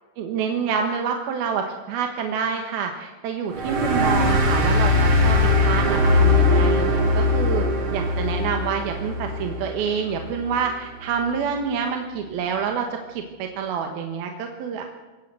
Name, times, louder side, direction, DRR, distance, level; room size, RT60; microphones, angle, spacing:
voice 1, 0.2-7.6 7.9-14.9, right 6 dB, 90° right, 4 dB, 3.4 m, -27 dB
sound 1, 3.5-10.6, left 2 dB, 45° right, 4.2 m, -21 dB
26.5 x 16.5 x 7.6 m, 1.2 s
omnidirectional pair, 4.2 m